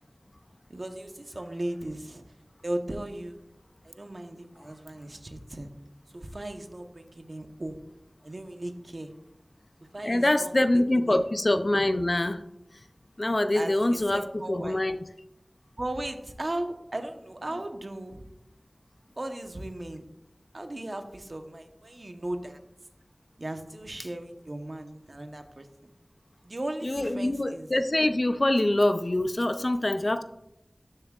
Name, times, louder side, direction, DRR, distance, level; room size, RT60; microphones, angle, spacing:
voice 1, 0.7-2.2 2.6-3.4 3.8-5.7 6.1-7.8 8.2-9.1 9.9-10.5 10.9-11.2 13.5-14.8 15.8-18.3 19.2-20.1 20.5-22.6 23.4-25.9 26.4-27.7, right 1 dB, 55° right, 6 dB, 0.9 m, -37 dB
voice 2, 10.0-12.4 13.2-15.0 26.8-30.2, left 1 dB, 45° left, 9 dB, 0.5 m, -25 dB
12.0 x 7.1 x 2.4 m, 0.87 s
wide cardioid pair, 55°, 0 cm